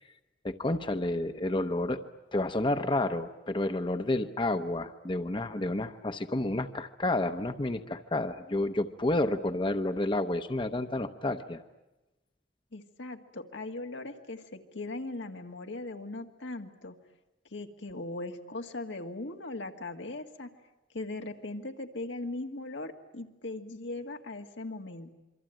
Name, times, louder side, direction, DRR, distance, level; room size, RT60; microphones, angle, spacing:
voice 1, 0.4-2.0 2.3-11.6, left 2 dB, 25° left, 8 dB, 0.9 m, -30 dB
voice 2, 12.7-17.0 17.5-20.5 20.9-25.1, left 2 dB, 85° left, 4 dB, 2.0 m, -39 dB
27.0 x 24.0 x 9.1 m, 1.0 s
head